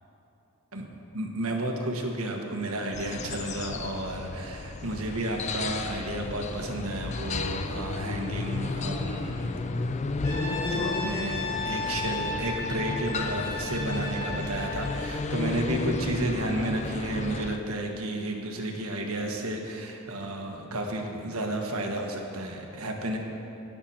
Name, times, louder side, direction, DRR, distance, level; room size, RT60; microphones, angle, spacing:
voice 1, 1.1-9.9 10.7-23.2, right 1 dB, 80° right, 2 dB, 1.4 m, -32 dB
sound 1, 2.9-17.6, left 3 dB, 30° left, 0.4 m, -33 dB
Brass instrument, 10.2-15.1, left 3 dB, 55° left, 2.6 m, -34 dB
19.0 x 7.0 x 4.4 m, 2.9 s
head